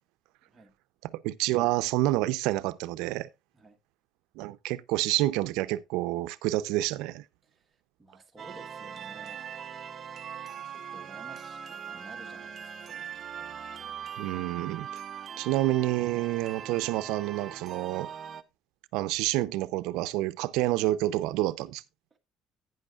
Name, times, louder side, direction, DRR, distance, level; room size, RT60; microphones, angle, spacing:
voice 1, 1.0-3.3 4.4-7.2 14.2-15.0 15.4-18.1 18.9-21.8, right 16 dB, 85° right, 0.5 m, -28 dB
voice 2, 7.4-9.4 10.7-13.1 13.4-13.5 15.4-15.5 22.1-22.2, right 2 dB, 15° right, 1.3 m, -53 dB
sound 1, 8.4-18.4, right 8 dB, 35° right, 0.6 m, -41 dB
12.0 x 9.1 x 2.4 m
cardioid pair, 155°, 0 cm